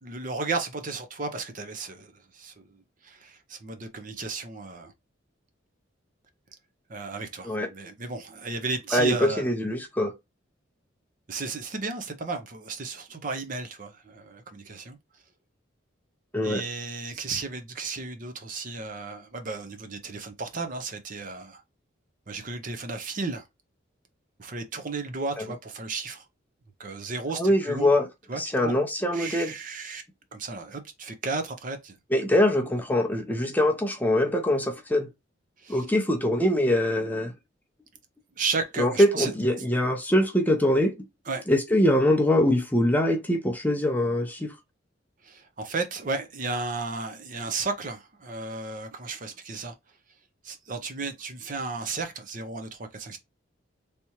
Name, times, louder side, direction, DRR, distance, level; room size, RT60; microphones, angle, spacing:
voice 1, 0.0-2.7 3.0-4.9 6.9-9.5 11.3-15.0 16.4-21.6 22.3-23.4 24.4-26.3 26.8-27.9 28.3-28.8 29.1-30.0 30.3-32.0 35.6-35.8 38.4-39.3 41.3-41.5 45.2-49.7 50.4-53.2, right 4 dB, 40° right, 0.6 m, -34 dB
voice 2, 8.9-10.1 16.3-16.6 25.4-25.5 27.4-28.1 28.3-29.5 32.1-35.1 35.7-37.3 38.8-40.9 41.5-44.6, left 1 dB, 10° left, 0.5 m, -23 dB
3.4 x 2.8 x 2.9 m
head